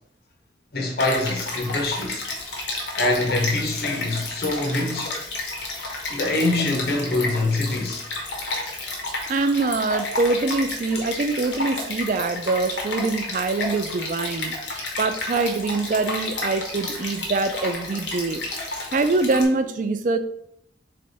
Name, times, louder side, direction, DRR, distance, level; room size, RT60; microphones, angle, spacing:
voice 1, 0.7-2.3 3.0-5.2 6.1-8.1, left 2 dB, 55° left, 0.8 m, -24 dB
Stream, 1.0-19.5, left 2 dB, 75° left, 1.1 m, -31 dB
voice 2, 9.3-18.4 18.9-20.2, right 3 dB, 45° right, 0.3 m, -24 dB
3.6 x 3.3 x 4.1 m
head